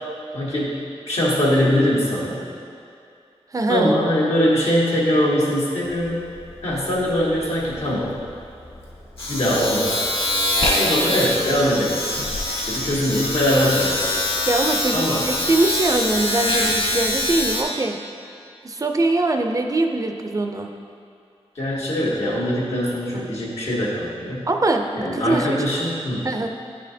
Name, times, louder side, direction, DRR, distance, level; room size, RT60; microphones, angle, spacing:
voice 1, 0.3-2.4 3.7-6.2 6.6-8.2 9.3-10.0 10.8-12.0 12.5-14.0 14.9-15.3 21.5-24.5 25.0-26.3, equal, 90° left, -6 dB, 1.4 m, -22 dB
voice 2, 3.5-3.9 14.5-18.0 18.6-20.7 23.1-23.3 24.5-25.6 26.2-26.5, right 2 dB, 35° right, 4 dB, 0.4 m, -22 dB
Domestic sounds home sounds, 5.8-6.1 6.4-17.6, left 1 dB, 60° left, 1.2 m, -24 dB
9.7 x 4.2 x 2.7 m, 2.5 s
wide cardioid pair, 90°, 11 cm